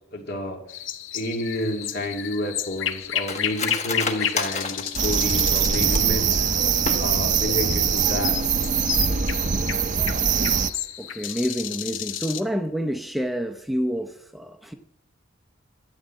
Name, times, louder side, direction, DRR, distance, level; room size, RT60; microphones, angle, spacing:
voice 1, 0.1-0.6 1.1-6.4 7.0-8.4, left 1 dB, 55° left, 2.4 m, -30 dB
sound 1, 0.7-12.4, left 10 dB, 80° left, 0.8 m, -32 dB
Cutlery silverware, 1.8-6.3 6.7-7.4 7.7-7.8 8.2-8.5 8.9-9.0, left 4 dB, 35° left, 1.3 m, -32 dB
sound 2, 4.9-10.7, right 7 dB, 40° right, 0.7 m, -22 dB
voice 2, 11.0-14.7, equal, ahead, 0.7 m, -28 dB
13.0 x 9.3 x 7.6 m
head